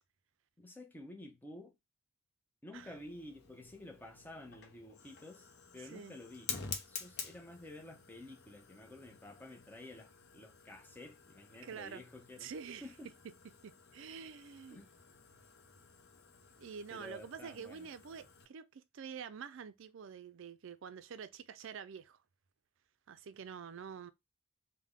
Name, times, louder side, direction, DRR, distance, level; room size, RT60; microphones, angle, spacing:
voice 1, 0.6-1.7 2.6-6.5 6.9-12.5 12.8-13.1 14.7-14.9 16.9-17.9, left 1 dB, 10° left, 0.6 m, -51 dB
Fire, 2.7-18.5, left 6 dB, 50° left, 0.6 m, -50 dB
voice 2, 5.8-6.2 11.6-12.0 12.4-12.9 13.6-14.9 16.6-22.2 23.1-24.1, right 6 dB, 60° right, 0.4 m, -47 dB
3.5 x 2.1 x 3.6 m
head